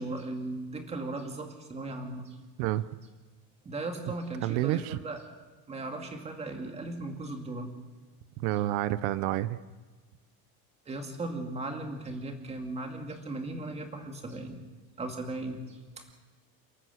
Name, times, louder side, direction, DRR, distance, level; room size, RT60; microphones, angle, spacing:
voice 1, 0.0-2.4 3.6-5.2 5.7-7.7 10.9-14.6 15.0-16.0, right 2 dB, 15° right, 4 dB, 2.3 m, -37 dB
voice 2, 4.4-5.0 8.4-9.6, right 15 dB, 80° right, 15 dB, 0.9 m, -28 dB
29.0 x 13.0 x 7.9 m, 1.3 s
cardioid pair, 180°, 42 cm